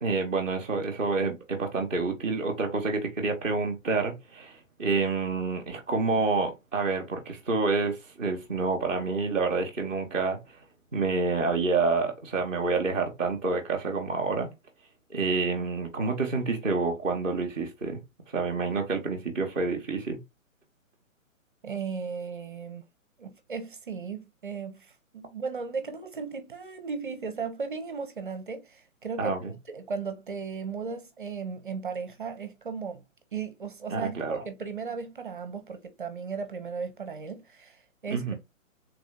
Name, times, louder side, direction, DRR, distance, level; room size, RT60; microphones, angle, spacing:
voice 1, 0.0-10.6 10.9-14.5 15.1-18.0 18.3-20.2 29.2-29.5 33.9-34.4 38.1-38.3, right 4 dB, 10° left, 0.5 m, -28 dB
voice 2, 21.6-22.8 23.2-29.4 29.7-33.0 33.3-38.3, right 5 dB, 40° right, 0.5 m, -36 dB
3.4 x 2.6 x 3.5 m
hypercardioid pair, 165°, 41 cm